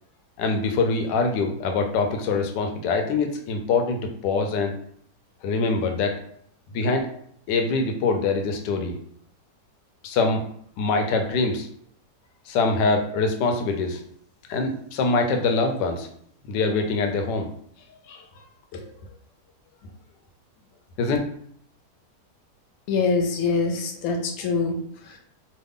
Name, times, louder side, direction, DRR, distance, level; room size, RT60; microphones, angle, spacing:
voice 1, 0.4-4.8 5.4-6.2 6.7-7.1 7.5-9.0 10.0-10.4 10.8-11.7 12.5-14.0 14.5-16.1 16.4-17.5 18.1-18.3 18.7-18.9 21.0-21.2, left 3 dB, 85° left, 4 dB, 1.2 m, -24 dB
voice 2, 22.9-24.8 25.1-25.2, left 4 dB, 65° left, 2 dB, 1.0 m, -24 dB
3.2 x 2.2 x 3.5 m, 0.65 s
omnidirectional pair, 1.8 m